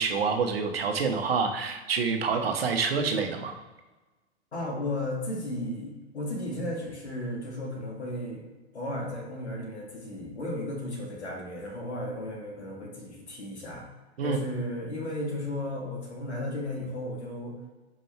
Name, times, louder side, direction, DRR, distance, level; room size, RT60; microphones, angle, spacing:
voice 1, 0.0-3.5 14.2-14.4, right 5 dB, 60° right, 5 dB, 1.0 m, -27 dB
voice 2, 4.5-8.5 8.7-13.8 14.2-17.5, left 1 dB, 75° left, -1 dB, 2.0 m, -34 dB
5.2 x 4.6 x 4.4 m, 1.2 s
figure-of-eight pair, 100°, 34 cm